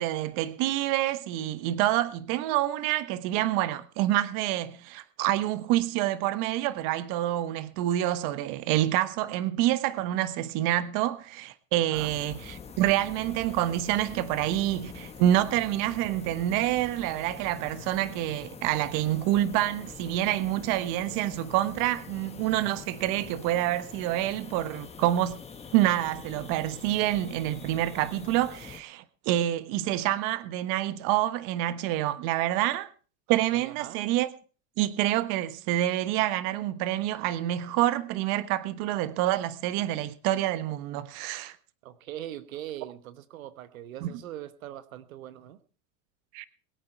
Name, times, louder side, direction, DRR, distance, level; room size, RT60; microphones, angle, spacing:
voice 1, 0.0-25.4 25.7-32.9 33.3-34.3 34.8-41.6 44.0-44.2 46.3-46.4, right 14 dB, 50° right, 1.3 m, -27 dB
sound 1, 11.9-28.8, left 6 dB, 15° left, 1.7 m, -45 dB
voice 2, 33.5-34.0 41.8-45.6, right 12 dB, 85° right, 1.2 m, -41 dB
22.0 x 8.8 x 4.6 m
supercardioid pair, 125°, 40 cm